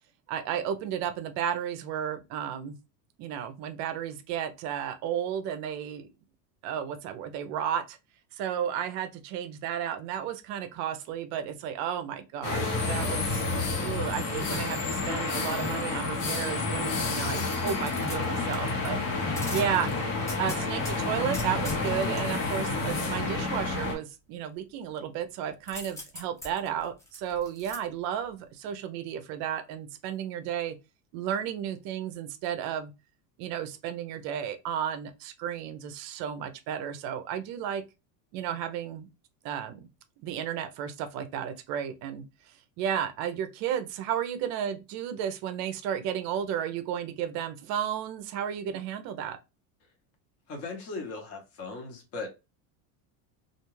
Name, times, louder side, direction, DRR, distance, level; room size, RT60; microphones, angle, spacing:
voice 1, 0.3-2.8 3.2-6.1 6.6-8.0 8.4-19.0 19.5-19.9 20.4-30.8 31.1-32.9 33.4-37.8 38.3-39.1 39.4-39.9 40.2-42.2 42.8-49.4, right 9 dB, 45° right, 0.5 m, -33 dB
sound 1, 12.4-24.0, left 3 dB, 70° left, 1.1 m, -30 dB
sound 2, 17.3-18.9 19.4-20.9 21.3-22.2 25.7-27.8 28.2-28.3, left 1 dB, 10° left, 0.4 m, -41 dB
voice 2, 50.5-52.3, left 3 dB, 35° left, 0.9 m, -38 dB
2.4 x 2.2 x 3.0 m
cardioid pair, 155°, 40 cm